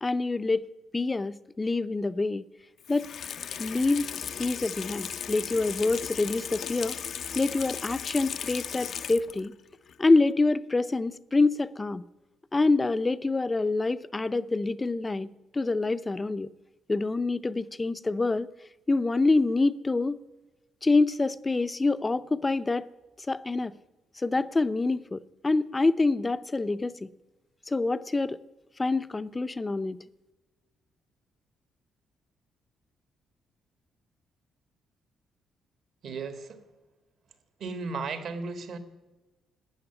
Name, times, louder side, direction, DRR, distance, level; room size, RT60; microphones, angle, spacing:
voice 1, 0.0-2.4 2.9-3.1 3.6-4.1 4.4-7.0 7.4-9.5 10.0-12.0 12.5-16.5 16.9-18.5 18.9-20.2 20.8-22.9 23.2-23.7 24.2-27.1 27.7-28.4 28.8-30.0, left 3 dB, 20° left, 0.6 m, -26 dB
Water tap faucet / Sink (filling or washing), 2.8-9.5 9.9-10.0, left 8 dB, 60° left, 0.6 m, -36 dB
voice 2, 36.0-36.6 37.6-38.8, right 4 dB, 65° right, 1.9 m, -35 dB
13.0 x 8.9 x 9.9 m
cardioid pair, 90°, 0 cm